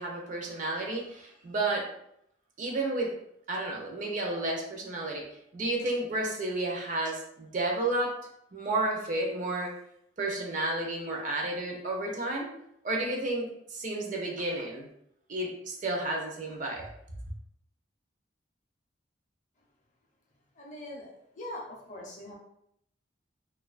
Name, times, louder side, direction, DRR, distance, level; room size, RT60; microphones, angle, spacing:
voice 1, 0.0-1.8 2.6-3.1 3.5-5.2 5.5-8.1 8.5-9.7 10.2-12.5 12.8-14.9 15.3-16.8, right 2 dB, 45° right, 0 dB, 0.5 m, -31 dB
voice 2, 20.6-22.3, left 1 dB, 40° left, -1 dB, 0.6 m, -42 dB
2.4 x 2.3 x 2.4 m, 0.74 s
head